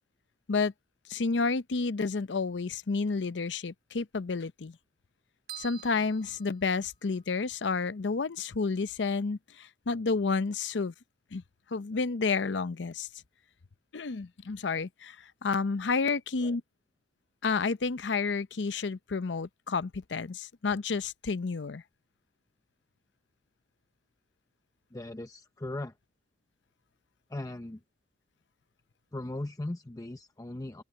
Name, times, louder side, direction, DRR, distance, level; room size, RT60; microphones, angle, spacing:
voice 1, 1.1-4.8 5.6-10.9 11.3-11.4 11.7-13.1 13.9-16.6 17.4-21.8, left 4 dB, 80° left, 0.6 m, -30 dB
sound 1, 5.5-7.3, right 11 dB, 55° right, 1.2 m, -47 dB
voice 2, 24.9-25.9 27.3-27.8 29.1-30.8, left 1 dB, 20° left, 0.6 m, -38 dB
open air
head